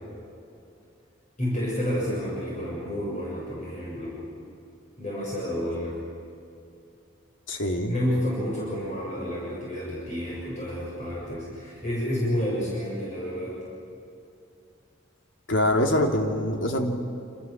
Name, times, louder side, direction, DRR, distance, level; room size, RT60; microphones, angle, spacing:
voice 1, 1.4-4.1 5.0-5.9 7.9-13.6, equal, 40° left, -6 dB, 7.4 m, -30 dB
voice 2, 7.5-7.9 15.5-17.0, left 1 dB, 80° left, 2 dB, 3.2 m, -24 dB
28.0 x 27.0 x 7.5 m, 2.5 s
head